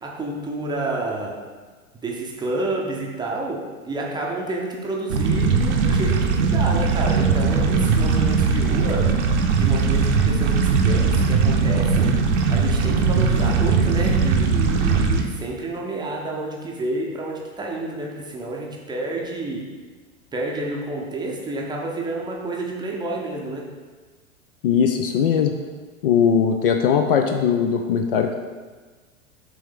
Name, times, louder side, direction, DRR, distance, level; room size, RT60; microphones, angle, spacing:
voice 1, 0.0-1.4 2.0-9.2 9.5-12.2 12.5-19.7 20.3-23.7, right 2 dB, 10° right, -2 dB, 0.7 m, -29 dB
sound 1, 5.1-15.2, right 5 dB, 55° right, 0.9 m, -19 dB
voice 2, 24.6-25.5 26.0-28.3, left 7 dB, 45° left, 5 dB, 0.5 m, -19 dB
6.8 x 3.5 x 5.1 m, 1.4 s
figure-of-eight pair, 95°, 42 cm